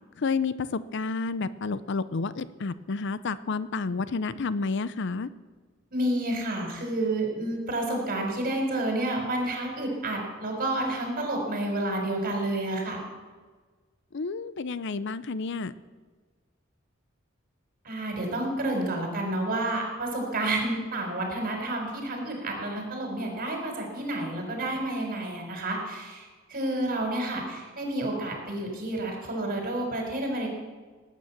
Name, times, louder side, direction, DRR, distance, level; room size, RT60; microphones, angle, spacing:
voice 1, 0.2-5.3 14.1-15.7, left 4 dB, 60° left, 15 dB, 0.6 m, -30 dB
voice 2, 5.9-13.0 17.8-26.2 26.5-30.5, right 1 dB, 45° right, 1 dB, 4.5 m, -30 dB
18.0 x 9.2 x 7.2 m, 1.4 s
head